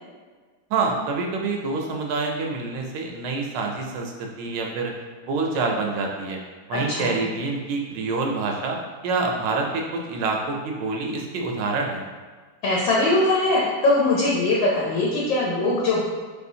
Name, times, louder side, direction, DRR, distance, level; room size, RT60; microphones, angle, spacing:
voice 1, 0.7-4.9 5.3-6.4 6.7-8.8 9.0-12.0, right 3 dB, 80° right, 1 dB, 1.2 m, -26 dB
voice 2, 6.7-7.1 12.6-16.0, left 2 dB, 85° left, -5 dB, 1.3 m, -21 dB
3.3 x 3.0 x 2.6 m, 1.5 s
omnidirectional pair, 2.0 m